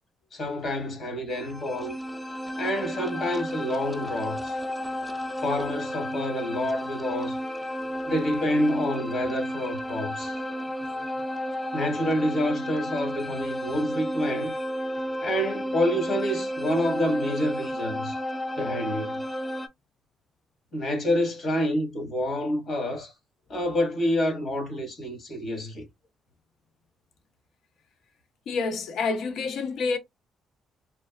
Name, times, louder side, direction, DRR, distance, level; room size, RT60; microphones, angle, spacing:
voice 1, 0.3-2.0 2.6-4.6 5.4-7.4 8.1-10.4 11.7-14.6 15.2-18.2 18.6-19.1 20.7-23.1 23.5-25.9, left 1 dB, 55° left, 1.2 m, -28 dB
sound 1, 1.3-19.7, equal, 5° left, 0.4 m, -32 dB
voice 2, 28.5-30.0, left 4 dB, 75° left, 0.6 m, -28 dB
3.2 x 2.4 x 2.2 m
cardioid pair, 90°, 0 cm